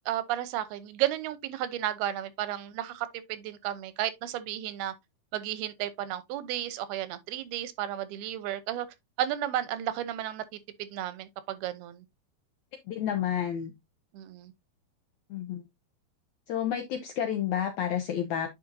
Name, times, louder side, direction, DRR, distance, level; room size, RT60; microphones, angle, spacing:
voice 1, 0.1-4.9 5.3-8.9 9.2-12.1 14.1-14.5, right 12 dB, 90° right, 2.8 m, -33 dB
voice 2, 12.9-13.7 15.3-15.6 16.5-18.5, left 9 dB, 80° left, 1.7 m, -30 dB
9.1 x 5.2 x 2.7 m
omnidirectional pair, 4.4 m